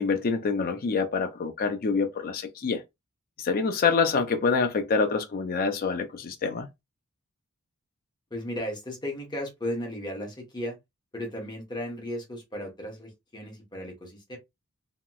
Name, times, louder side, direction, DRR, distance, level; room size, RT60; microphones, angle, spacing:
voice 1, 0.0-2.8 3.4-6.7, left 5 dB, 40° left, 0.5 m, -26 dB
voice 2, 8.3-10.8 11.1-14.4, left 1 dB, 20° left, 1.0 m, -35 dB
2.9 x 2.8 x 2.2 m
head